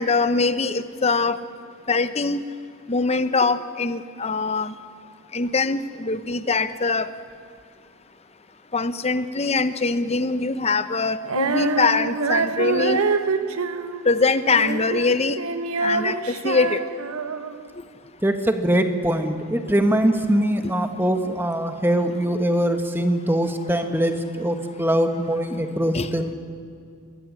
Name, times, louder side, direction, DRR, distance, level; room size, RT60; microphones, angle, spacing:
voice 1, 0.0-1.4 1.9-2.4 2.9-4.7 5.3-7.1 8.7-13.0 14.1-15.4 15.8-16.1 16.4-16.8 25.9-26.1, left 4 dB, 30° left, 12 dB, 0.8 m, -22 dB
Female singing, 11.2-17.7, right 4 dB, 80° right, 1.2 m, -26 dB
voice 2, 18.2-26.3, right 1 dB, 10° right, 6 dB, 1.5 m, -22 dB
24.5 x 21.0 x 9.8 m, 2.3 s
head